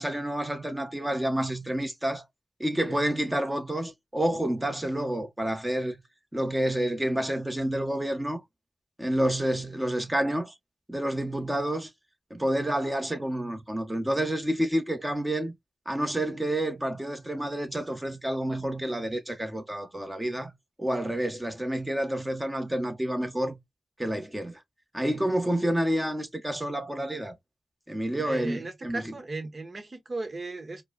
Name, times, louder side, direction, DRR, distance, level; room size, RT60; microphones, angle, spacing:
voice 1, 0.0-2.2 2.6-6.0 6.3-8.4 9.0-10.5 10.9-11.9 12.3-15.5 15.8-20.5 20.8-23.6 24.0-24.6 24.9-27.3 27.9-29.1, right 1 dB, 15° right, 1.3 m, -29 dB
voice 2, 25.4-25.7 28.2-30.8, right 3 dB, 50° right, 1.3 m, -37 dB
4.6 x 2.3 x 2.3 m
cardioid pair, 50°, 0 cm